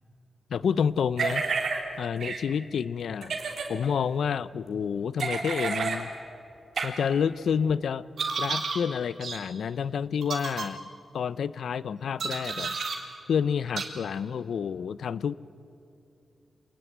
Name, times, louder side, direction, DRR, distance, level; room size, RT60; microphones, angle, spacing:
voice 1, 0.5-1.4 2.0-3.4 3.7-6.1 6.8-8.1 8.4-10.8 11.1-12.8 13.3-15.3, left 7 dB, 90° left, 18 dB, 0.6 m, -29 dB
sound 1, 1.2-1.8 2.2-2.4 3.2-3.7 5.2-6.0 6.8-6.9 8.2-8.8 9.2-9.4 10.2-10.7 12.2-13.0 13.8-13.9, right 5 dB, 75° right, 3.5 m, -30 dB
27.5 x 19.5 x 9.3 m, 2.8 s
wide cardioid pair, 115°, 0 cm